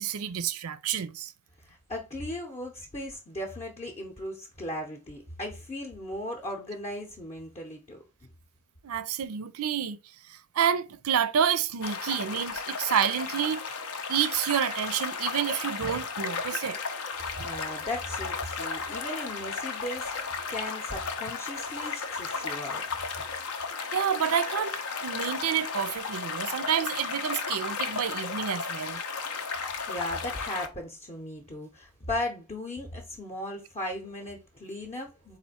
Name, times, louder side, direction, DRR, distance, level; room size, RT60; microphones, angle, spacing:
voice 1, 0.0-1.3 8.8-10.0 10.3-13.6 14.1-16.8 23.9-29.0, right 8 dB, 70° right, 0.4 m, -29 dB
voice 2, 1.6-8.3 17.2-22.8 29.7-35.4, left 1 dB, 30° left, 0.7 m, -37 dB
sound 1, 11.8-30.7, left 5 dB, 70° left, 0.6 m, -34 dB
4.3 x 2.5 x 4.1 m
head